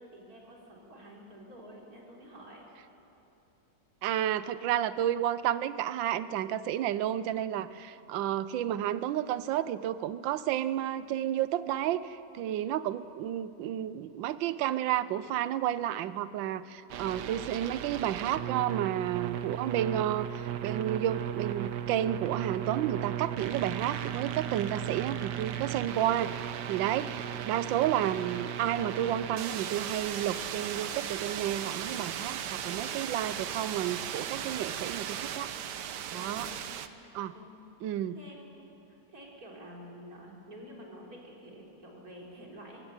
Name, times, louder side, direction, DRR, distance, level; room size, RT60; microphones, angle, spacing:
voice 1, 0.0-2.7 12.4-12.7 36.1-37.5 37.8-42.8, equal, 50° right, -2 dB, 4.1 m, -50 dB
voice 2, 4.0-35.5 36.1-36.5 37.1-37.3 37.8-38.2, right 11 dB, 85° right, 15 dB, 1.4 m, -31 dB
sound 1, 16.9-36.9, right 10 dB, 70° right, 1.4 m, -36 dB
23.0 x 15.5 x 9.0 m, 2.9 s
omnidirectional pair, 2.0 m